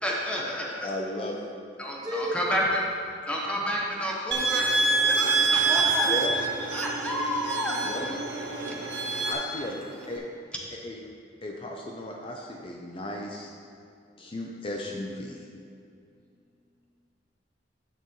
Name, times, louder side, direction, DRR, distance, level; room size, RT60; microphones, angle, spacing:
voice 1, 0.0-0.9 1.8-2.8 3.3-6.4 6.7-7.7 8.7-8.8, equal, 5° left, -3 dB, 1.1 m, -30 dB
voice 2, 0.8-1.4 6.0-6.4 7.8-8.1 9.2-9.8 10.1-10.2 10.7-11.0 11.4-13.5 14.2-15.4, left 1 dB, 30° left, 0 dB, 0.6 m, -35 dB
voice 3, 2.0-2.7 5.6-6.3 7.7-8.8, right 1 dB, 20° right, -1 dB, 0.9 m, -35 dB
sound 1, 4.3-9.3, right 3 dB, 90° right, 0.8 m, -26 dB
sound 2, 4.6-10.2, right 3 dB, 60° right, 1.1 m, -42 dB
10.5 x 6.7 x 3.1 m, 2.4 s
head